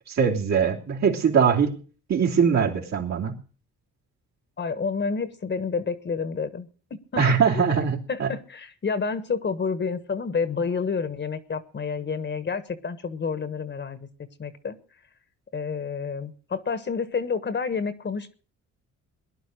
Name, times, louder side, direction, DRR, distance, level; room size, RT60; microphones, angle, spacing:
voice 1, 0.1-1.7 2.1-3.3 7.2-8.3, right 6 dB, 60° right, -1 dB, 3.2 m, -22 dB
voice 2, 4.6-6.7 7.1-7.2 7.5-7.7 8.1-14.1 14.4-14.8 15.5-18.3, left 5 dB, 35° left, 13 dB, 1.4 m, -29 dB
18.0 x 11.0 x 6.5 m, 0.42 s
cardioid pair, 90°, 30 cm